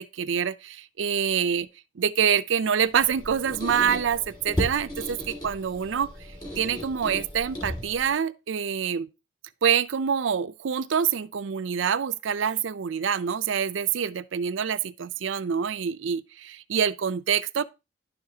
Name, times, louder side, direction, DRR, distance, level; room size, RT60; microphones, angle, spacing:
voice 1, 0.0-1.7 2.0-6.1 6.6-9.1 9.6-17.6, right 7 dB, 85° right, 0.5 m, -26 dB
Squeak, 2.9-8.2, equal, 25° left, 1.9 m, -35 dB
10.0 x 6.5 x 2.8 m
head